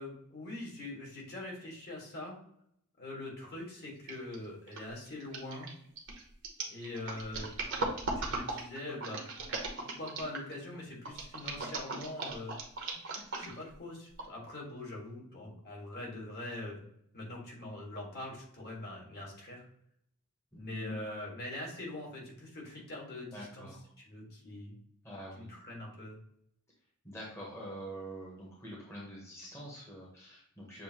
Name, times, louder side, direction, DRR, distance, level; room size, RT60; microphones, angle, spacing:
voice 1, 0.0-2.4 3.0-5.7 6.7-7.6 8.1-9.2 9.8-12.6 13.4-16.8 17.1-19.6 20.5-23.7 24.0-24.7 25.4-26.2, left 1 dB, 50° left, -2 dB, 1.6 m, -43 dB
sound 1, 4.1-4.4 4.7-10.5 11.1-13.7 14.2-14.3, right 3 dB, 55° right, 0.9 m, -38 dB
voice 2, 20.5-20.9 23.3-23.8 25.0-25.5 27.0-30.8, equal, 10° left, -4 dB, 1.0 m, -45 dB
6.8 x 2.6 x 2.8 m, 0.71 s
head